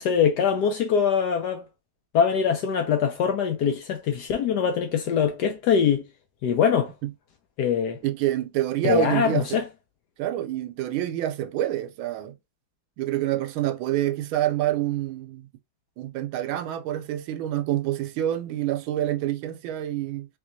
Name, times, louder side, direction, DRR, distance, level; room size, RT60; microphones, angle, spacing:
voice 1, 0.0-1.6 2.1-6.0 6.4-6.9 7.6-8.0 8.8-9.6, left 7 dB, 70° left, 1.0 m, -23 dB
voice 2, 8.0-9.6 10.2-12.3 13.0-15.5 16.0-20.3, right 13 dB, 85° right, 1.4 m, -27 dB
3.6 x 3.2 x 2.6 m
omnidirectional pair, 2.2 m